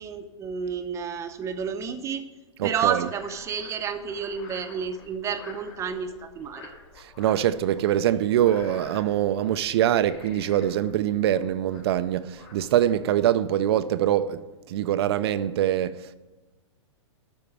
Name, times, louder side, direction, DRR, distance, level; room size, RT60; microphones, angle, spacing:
voice 1, 0.0-2.2 2.6-6.7, right 7 dB, 20° right, 0.8 m, -30 dB
Frog, 2.6-12.9, left 4 dB, 60° left, 3.6 m, -49 dB
voice 2, 2.6-3.1 7.0-16.1, right 11 dB, 55° right, 0.5 m, -24 dB
12.5 x 4.4 x 8.4 m
hypercardioid pair, 130°, 16 cm